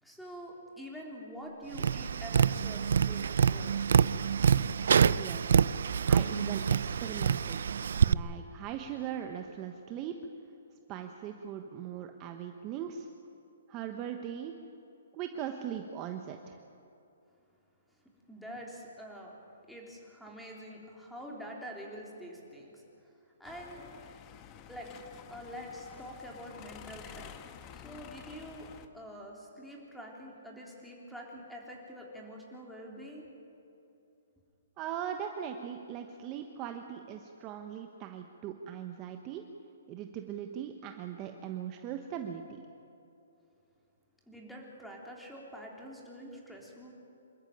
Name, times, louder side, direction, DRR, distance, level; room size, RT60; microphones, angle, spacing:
voice 1, 0.0-3.8 18.3-19.4 19.7-23.1 23.4-23.9 24.7-27.3 27.7-28.7 28.9-33.3 44.3-46.9, equal, ahead, -2 dB, 3.7 m, -46 dB
Tap, 1.7-8.1, right 7 dB, 70° right, 0.5 m, -26 dB
voice 2, 5.2-5.6 6.0-7.6 8.0-10.2 10.9-13.1 13.7-14.5 15.1-16.6 34.8-39.5 39.9-42.7, right 9 dB, 25° right, 5 dB, 1.2 m, -40 dB
sound 1, 23.4-28.9, left 9 dB, 25° left, 1.2 m, -50 dB
26.5 x 14.0 x 9.2 m, 2.8 s
hypercardioid pair, 155°, 0 cm